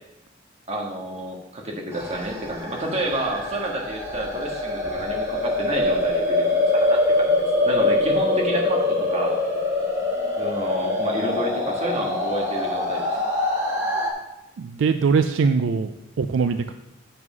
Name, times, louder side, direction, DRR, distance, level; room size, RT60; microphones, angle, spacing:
voice 1, 0.7-6.5 6.7-7.3 7.6-8.8 9.1-9.3 10.4-13.2, right 1 dB, 35° right, 0 dB, 1.6 m, -29 dB
sound 1, 1.9-14.1, left 2 dB, 15° right, 1.9 m, -24 dB
voice 2, 14.6-15.9 16.2-16.7, right 5 dB, 70° right, 9 dB, 0.4 m, -21 dB
7.8 x 5.6 x 6.1 m, 0.89 s
head